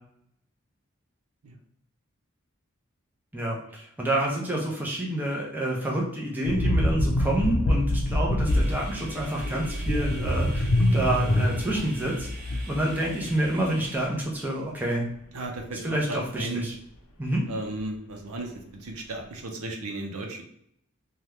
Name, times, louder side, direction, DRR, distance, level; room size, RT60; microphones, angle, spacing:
voice 1, 3.3-15.0 15.8-16.7 17.2-17.4, right 1 dB, 10° right, -3 dB, 0.5 m, -28 dB
sound 1, 6.4-13.9 14.1-14.3, left 1 dB, 90° left, 0.7 m, -26 dB
sound 2, 8.4-14.1, right 2 dB, 40° right, 0.7 m, -45 dB
voice 2, 15.3-16.7 17.5-20.4, right 2 dB, 85° right, 2 dB, 0.6 m, -35 dB
2.8 x 2.3 x 3.3 m, 0.71 s
head